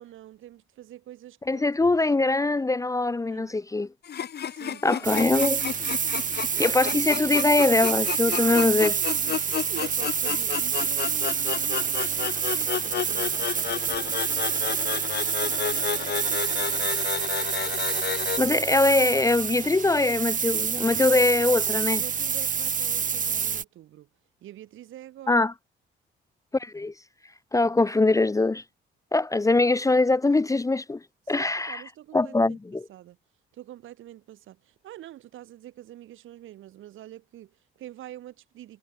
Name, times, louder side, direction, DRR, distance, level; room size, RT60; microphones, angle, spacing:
voice 1, 0.0-1.8 3.3-3.5 4.4-5.3 8.3-8.7 9.0-16.9 21.9-24.1 24.4-25.5 31.3-32.6 32.9-33.2 33.5-38.8, right 13 dB, 80° right, 7.0 m, -45 dB
voice 2, 1.5-3.9 4.8-5.6 6.6-8.9 18.4-22.0 25.3-25.5 26.6-26.9 27.5-28.6 29.1-31.0 31.3-31.8 32.1-32.8, left 2 dB, 15° left, 0.6 m, -22 dB
sound 1, 4.0-18.4, left 8 dB, 55° left, 2.3 m, -32 dB
sound 2, 5.0-23.6, right 7 dB, 40° right, 1.2 m, -28 dB
cardioid pair, 90°, 20 cm